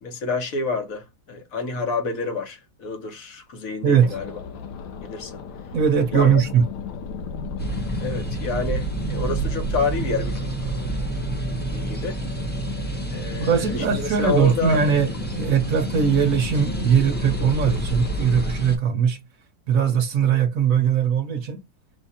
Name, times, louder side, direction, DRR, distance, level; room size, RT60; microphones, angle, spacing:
voice 1, 0.0-4.4 5.0-5.4 6.1-6.4 8.0-10.5 11.7-12.2 13.1-14.8, left 4 dB, 55° left, 1.2 m, -28 dB
voice 2, 3.8-4.2 5.7-6.7 13.4-19.2 19.7-21.6, right 7 dB, 60° right, 1.0 m, -20 dB
sound 1, 4.0-18.6, left 5 dB, 85° left, 1.6 m, -34 dB
sound 2, 7.6-18.8, right 3 dB, 10° left, 0.7 m, -29 dB
5.0 x 2.5 x 4.1 m
omnidirectional pair, 2.0 m